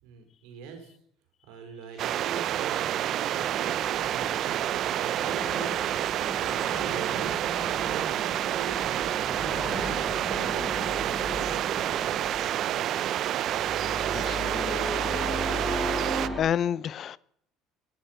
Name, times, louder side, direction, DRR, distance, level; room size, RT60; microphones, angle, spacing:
voice 1, 0.0-0.9 1.4-5.8 6.6-9.7 10.2-12.0, right 6 dB, 80° right, 4.6 m, -42 dB
sound 1, 2.0-16.3, right 12 dB, 55° right, 0.5 m, -29 dB
sound 2, 3.3-16.4, equal, ahead, 6.0 m, -37 dB
voice 2, 14.1-14.8 15.4-16.1 16.4-17.2, left 9 dB, 45° left, 0.6 m, -31 dB
18.0 x 11.5 x 5.9 m
supercardioid pair, 100°, 0 cm